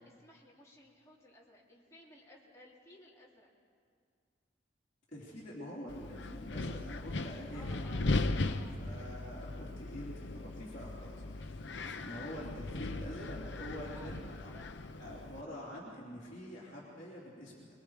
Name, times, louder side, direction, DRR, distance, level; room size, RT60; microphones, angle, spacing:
voice 1, 0.2-3.5 7.5-8.1 8.5-8.8 11.8-12.1 13.9-14.7, left 1 dB, 15° left, -4 dB, 2.8 m, -58 dB
voice 2, 5.1-7.8 8.8-14.5 15.0-17.7, equal, 40° left, -8 dB, 3.4 m, -46 dB
Wind, 5.9-15.4, left 2 dB, 65° left, 0.8 m, -38 dB
24.5 x 22.0 x 4.9 m, 2.1 s
head